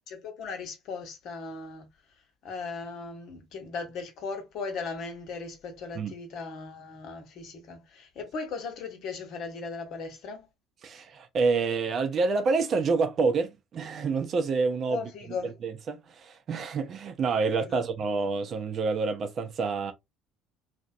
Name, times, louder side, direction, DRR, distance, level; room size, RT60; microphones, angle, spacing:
voice 1, 0.1-1.9 2.4-10.5 14.9-15.6 17.6-17.8, left 4 dB, 55° left, 0.9 m, -37 dB
voice 2, 10.8-15.1 15.4-19.9, right 4 dB, 45° right, 0.6 m, -28 dB
2.8 x 2.1 x 2.4 m
figure-of-eight pair, 60°, 0 cm